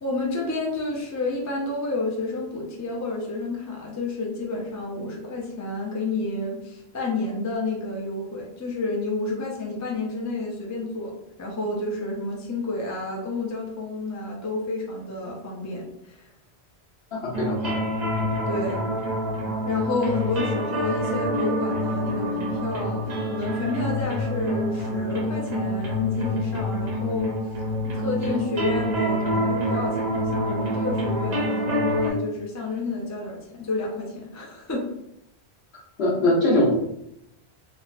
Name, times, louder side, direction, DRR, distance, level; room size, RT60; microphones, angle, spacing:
voice 1, 0.0-11.1 11.4-16.3 18.5-18.8 19.7-27.4 27.9-34.9, left 2 dB, 25° left, -2 dB, 0.4 m, -30 dB
voice 2, 17.1-17.7 36.0-36.7, left 1 dB, 70° left, -5 dB, 1.2 m, -21 dB
sound 1, 17.3-32.1, equal, 50° right, 0.6 m, -27 dB
3.6 x 2.1 x 2.4 m, 0.80 s
omnidirectional pair, 1.1 m